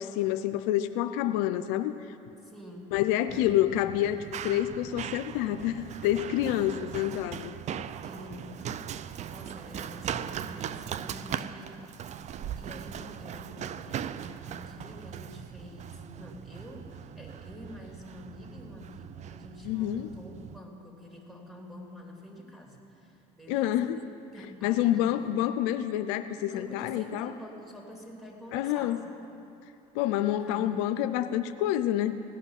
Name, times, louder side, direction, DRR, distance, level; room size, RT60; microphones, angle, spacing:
voice 1, 0.0-1.9 2.9-7.5 19.7-20.1 23.5-24.0 24.6-27.3 28.5-29.0 29.9-32.2, left 12 dB, 80° left, 10 dB, 0.5 m, -28 dB
voice 2, 2.4-3.0 3.3-3.7 6.5-7.2 8.0-12.2 12.6-23.8 24.3-25.1 26.5-29.2 30.4-30.9, left 1 dB, ahead, -2 dB, 3.0 m, -47 dB
Run, 3.3-20.6, right 9 dB, 45° right, 0.5 m, -39 dB
17.0 x 5.7 x 9.8 m, 2.8 s
supercardioid pair, 85°, 17 cm